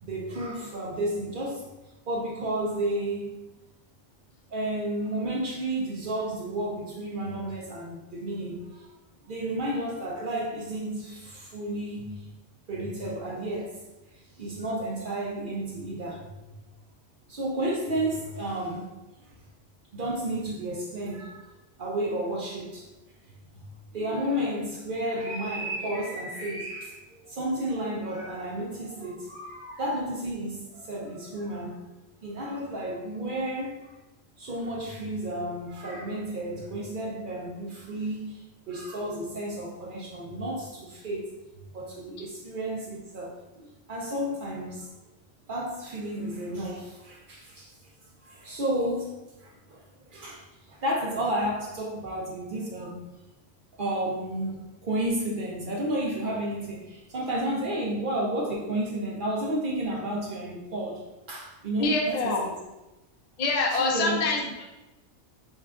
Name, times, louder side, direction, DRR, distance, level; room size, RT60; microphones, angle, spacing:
voice 1, 0.0-1.7 2.1-3.4 4.5-8.9 9.2-12.3 12.7-13.8 14.4-16.6 17.3-18.9 19.2-19.3 19.9-21.5 21.8-22.9 23.5-23.7 23.9-31.8 32.2-33.9 34.4-41.4 41.7-44.9 45.5-47.9 48.2-53.0 53.7-61.0 61.3-62.5 63.7-64.2, right 1 dB, 60° right, 0.5 m, -32 dB
voice 2, 61.8-62.4 63.4-64.6, left 3 dB, 60° left, 0.4 m, -25 dB
5.3 x 2.4 x 2.4 m
omnidirectional pair, 1.4 m